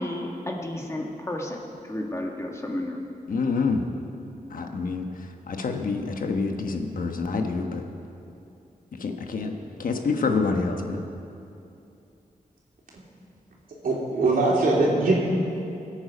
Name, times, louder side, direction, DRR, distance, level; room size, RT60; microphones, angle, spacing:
voice 1, 0.0-1.6 1.9-3.0, left 1 dB, 20° left, 0 dB, 1.6 m, -31 dB
voice 2, 3.3-3.8 4.5-7.8 9.0-9.5 9.8-11.0, left 4 dB, 70° left, 4 dB, 1.2 m, -27 dB
voice 3, 13.8-15.1, right 2 dB, 75° right, -4 dB, 3.3 m, -21 dB
22.0 x 8.8 x 5.1 m, 2.7 s
wide cardioid pair, 140°, 15 cm